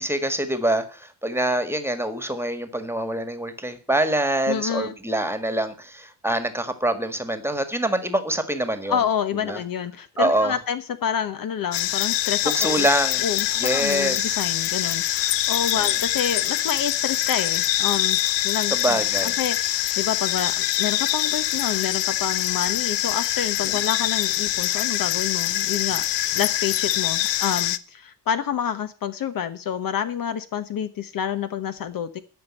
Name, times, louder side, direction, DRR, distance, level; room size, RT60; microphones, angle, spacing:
voice 1, 0.0-9.0 9.4-9.6 10.2-10.6 12.4-13.2 13.6-14.4 15.7-15.8 18.7-19.4 23.6-23.8, right 1 dB, 5° right, 9 dB, 1.6 m, -25 dB
voice 2, 4.5-4.9 8.9-12.9 13.2-18.2 18.4-32.2, left 8 dB, 55° left, 11 dB, 1.1 m, -28 dB
sound 1, 11.7-27.8, left 14 dB, 90° left, 0.7 m, -24 dB
12.5 x 5.5 x 8.8 m, 0.39 s
cardioid pair, 105°, 41 cm